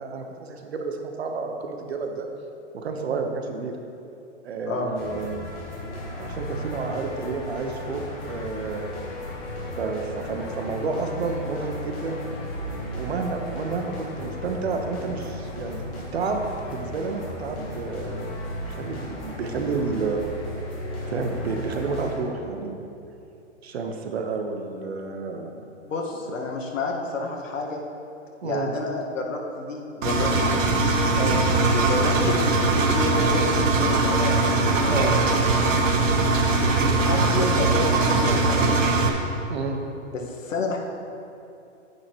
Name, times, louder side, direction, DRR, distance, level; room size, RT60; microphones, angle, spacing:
voice 1, 0.0-2.3 2.7-3.7 4.4-5.5 6.2-8.8 9.8-12.2 12.9-15.8 16.1-18.3 18.6-20.2 21.1-22.8 23.6-25.5 28.4-28.7 31.1-31.4 34.9-35.3 39.5-39.8, right 4 dB, 55° right, 4 dB, 1.1 m, -30 dB
sound 1, 4.9-22.1, left 1 dB, 10° left, 0.6 m, -35 dB
voice 2, 25.5-27.8 28.4-30.6 31.7-34.4 34.8-35.4 36.8-38.8 40.1-40.8, left 3 dB, 85° left, 0 dB, 1.7 m, -29 dB
Engine, 30.0-39.1, right 3 dB, 80° right, 1.5 m, -21 dB
10.5 x 9.6 x 3.1 m, 2.7 s
hypercardioid pair, 170°, 38 cm